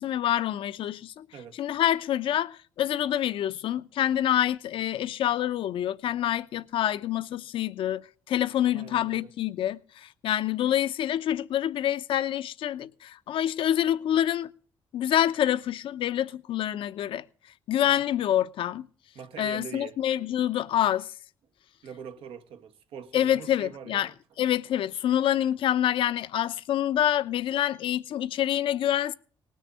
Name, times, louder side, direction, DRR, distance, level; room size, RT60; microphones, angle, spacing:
voice 1, 0.0-1.2 1.5-14.5 14.9-17.2 17.7-18.9 19.4-21.1 23.1-24.1 24.4-29.1, left 11 dB, 70° left, 0.8 m, -27 dB
voice 2, 8.7-9.3 19.1-20.0 21.8-24.1, right 7 dB, 80° right, 1.6 m, -43 dB
19.0 x 6.5 x 9.6 m
cardioid pair, 85°, 9 cm